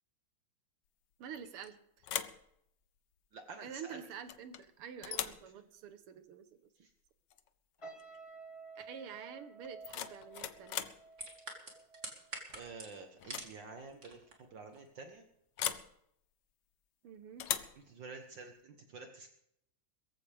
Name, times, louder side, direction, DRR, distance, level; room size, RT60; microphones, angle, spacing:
voice 1, 1.2-2.1 3.6-6.5 8.8-10.9 17.0-17.5, right 7 dB, 85° right, 10 dB, 2.0 m, -48 dB
sound 1, 1.3-1.7 2.0-2.4 4.3-4.6 5.0-5.5 7.3-7.5 7.8-8.2 9.6-11.0 12.5-12.8 13.2-13.5 13.8-13.9 15.6-15.9 17.4-17.8, left 10 dB, 65° left, 1.3 m, -39 dB
voice 2, 3.3-4.0 5.1-5.2 6.8-6.9 12.5-15.2 17.7-19.3, right 4 dB, 60° right, 5 dB, 1.8 m, -49 dB
sound 2, 7.8-13.1 13.4-13.7, right 4 dB, 20° left, 1.1 m, -53 dB
sound 3, 11.1-13.6 13.9-14.3 14.7-14.9, right 2 dB, 35° right, 2.9 m, -45 dB
22.0 x 15.0 x 3.5 m, 0.75 s
omnidirectional pair, 2.4 m